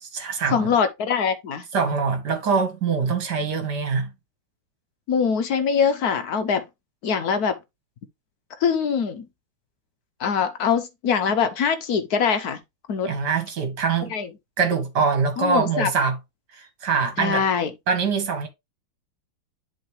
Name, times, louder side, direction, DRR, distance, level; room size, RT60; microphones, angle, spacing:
voice 1, 0.0-0.7 1.7-4.1 13.1-14.1 14.6-16.2 16.5-17.4 17.9-18.5, right 5 dB, 55° right, 2.2 m, -23 dB
voice 2, 0.5-1.6 5.1-6.6 7.0-7.5 8.6-9.2 10.2-12.6 12.9-13.1 14.1-14.3 15.4-15.9 17.2-17.7, left 6 dB, 65° left, 1.0 m, -23 dB
10.5 x 3.7 x 3.1 m
omnidirectional pair, 2.2 m